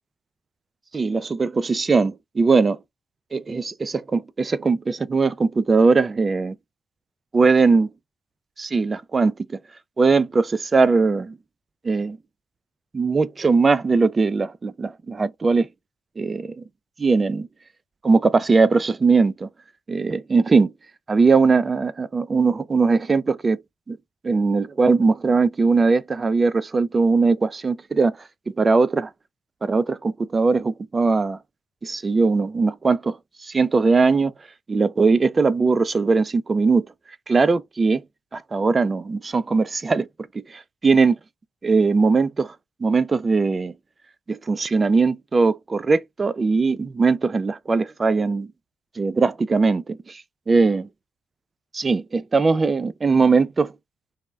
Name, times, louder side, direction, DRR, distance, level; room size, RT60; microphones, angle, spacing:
voice 1, 0.9-2.8 3.3-6.6 7.3-7.9 8.6-9.6 10.0-11.4 11.8-12.2 12.9-15.7 16.2-16.6 17.0-17.5 18.0-19.5 19.9-20.7 21.1-23.6 23.9-24.0 24.2-28.2 28.5-29.1 29.6-31.4 31.8-33.2 33.4-34.3 34.7-36.9 37.3-38.0 38.3-40.1 40.3-41.2 41.6-42.5 42.8-43.7 44.3-48.5 49.0-50.9 51.7-53.7, right 4 dB, 35° right, 0.3 m, -20 dB
2.1 x 2.0 x 3.3 m
hypercardioid pair, 50°, 0 cm